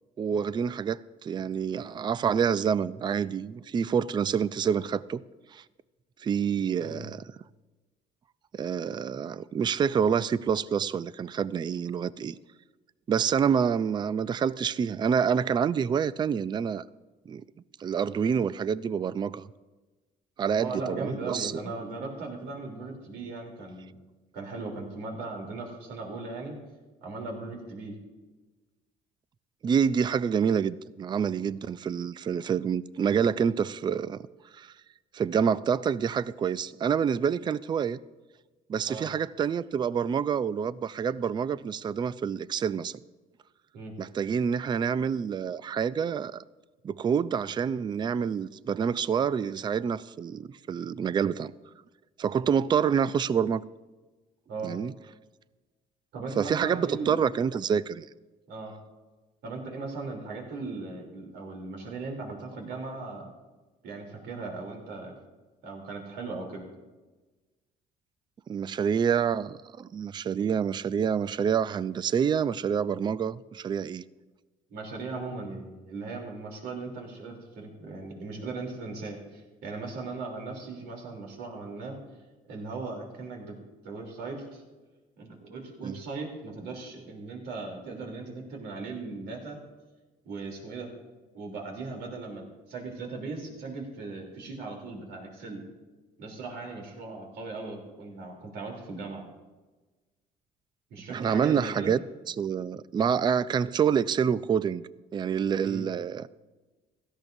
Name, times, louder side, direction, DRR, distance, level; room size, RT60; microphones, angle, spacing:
voice 1, 0.2-5.2 5.5-5.6 6.2-7.3 8.5-12.4 13.1-16.8 17.3-17.4 17.8-19.5 20.4-21.6 29.6-34.3 34.5-34.7 35.1-38.0 38.7-43.0 44.0-46.4 46.8-51.5 52.2-53.6 54.6-54.9 56.4-58.1 68.5-74.0 85.8-86.0 101.1-102.0 102.3-104.8 105.1-106.3, right 7 dB, 25° right, 0.3 m, -27 dB
voice 2, 20.5-23.9 24.3-26.6 27.0-28.0 38.9-39.1 43.7-43.9 54.5-54.7 56.1-57.2 58.5-58.7 59.4-63.3 63.8-65.1 65.6-66.7 74.7-82.0 82.5-83.6 83.8-84.6 85.2-89.6 90.2-90.9 91.3-95.6 96.2-99.3 100.9-101.9 105.6-105.8, right 3 dB, 80° right, 3.3 m, -38 dB
16.5 x 13.5 x 2.7 m
cardioid pair, 110°, 17 cm